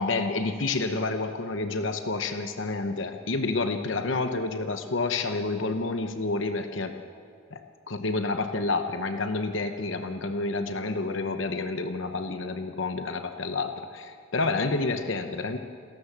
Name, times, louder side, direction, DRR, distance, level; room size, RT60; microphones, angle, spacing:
voice 1, 0.0-7.0 7.5-7.6 7.9-15.6, left 3 dB, 60° left, 7 dB, 0.9 m, -29 dB
28.0 x 13.5 x 7.4 m, 2.4 s
head